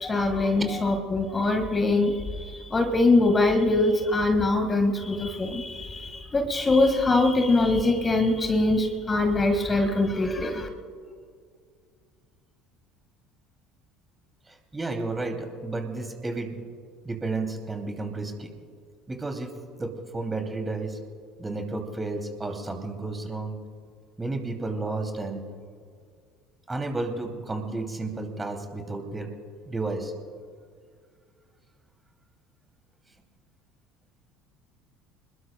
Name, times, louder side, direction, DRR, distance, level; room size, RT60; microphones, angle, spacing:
voice 1, 0.0-10.7, left 2 dB, 20° left, 6 dB, 1.7 m, -23 dB
voice 2, 14.5-16.6 17.0-18.5 19.1-19.5 19.8-21.0 21.4-23.5 24.2-25.4 26.7-29.3 29.7-30.1, right 3 dB, 15° right, 4 dB, 2.6 m, -32 dB
28.0 x 20.5 x 2.2 m, 2.1 s
figure-of-eight pair, 60°, 0 cm